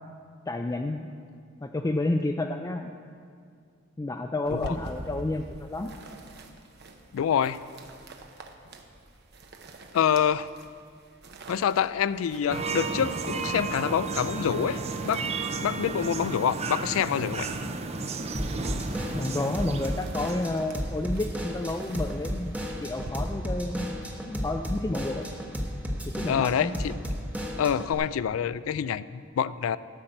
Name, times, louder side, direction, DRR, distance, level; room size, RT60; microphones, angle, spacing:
voice 1, 0.5-1.1 1.6-2.9 4.0-5.9 19.1-22.5 22.8-23.9 24.2-25.2 26.2-26.7, left 2 dB, 15° left, 4 dB, 0.4 m, -30 dB
sound 1, 4.5-23.1, right 2 dB, 55° right, 0.9 m, -48 dB
voice 2, 7.1-7.6 9.9-10.5 11.5-15.2 15.6-17.5 26.3-26.9 27.6-29.8, left 8 dB, 90° left, 17 dB, 0.3 m, -26 dB
sound 2, 12.5-20.8, right 4 dB, 30° right, 0.6 m, -33 dB
Drum kit / Drum, 18.3-27.9, equal, 5° right, 0.9 m, -33 dB
13.0 x 5.8 x 7.7 m, 2.2 s
head